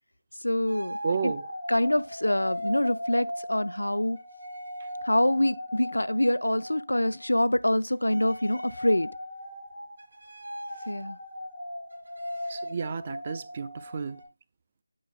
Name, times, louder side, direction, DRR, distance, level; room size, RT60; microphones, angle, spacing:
voice 1, 0.4-1.0 1.2-1.3 1.7-4.2 5.0-9.1 10.9-11.2, left 1 dB, 75° left, 0.5 m, -25 dB
sound 1, 0.7-7.6 7.9-14.2, left 1 dB, 60° right, 2.5 m, -38 dB
voice 2, 1.0-1.5 12.5-14.2, right 5 dB, 25° right, 0.4 m, -32 dB
8.6 x 5.9 x 3.5 m
figure-of-eight pair, 160°, 0 cm